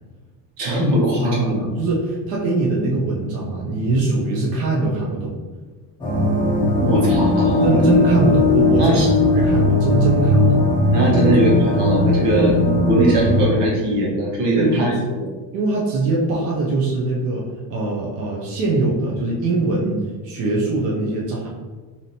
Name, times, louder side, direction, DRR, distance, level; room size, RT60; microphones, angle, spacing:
voice 1, 0.6-1.5 6.8-7.8 8.8-9.1 10.9-14.9 15.2-15.3, right 1 dB, 65° right, -3 dB, 1.2 m, -20 dB
voice 2, 1.2-5.3 7.6-9.0 9.4-10.6 14.6-15.1 15.5-17.4 17.7-21.5, right 2 dB, 35° right, -4 dB, 0.5 m, -22 dB
sound 1, 6.0-13.4, left 1 dB, 10° left, 0.6 m, -18 dB
4.8 x 2.8 x 2.7 m, 1.4 s
cardioid pair, 165°, 46 cm